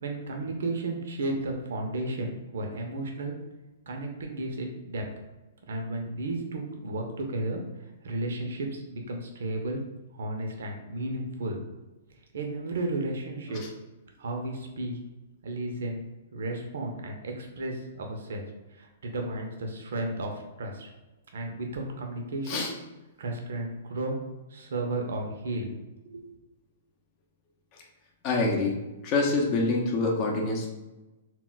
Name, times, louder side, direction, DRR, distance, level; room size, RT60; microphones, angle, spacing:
voice 1, 0.0-3.4 3.9-5.0 5.7-9.8 10.1-11.6 12.3-13.6 14.2-15.0 15.4-16.0 16.3-18.5 18.7-20.9 21.3-22.7 23.2-24.2 24.5-25.8 26.1-26.2, right 2 dB, 75° right, 2 dB, 0.5 m, -33 dB
voice 2, 28.2-28.7 29.0-30.7, left 3 dB, 35° left, 0 dB, 0.6 m, -26 dB
2.1 x 2.1 x 3.8 m, 1.1 s
hypercardioid pair, 135°, 0 cm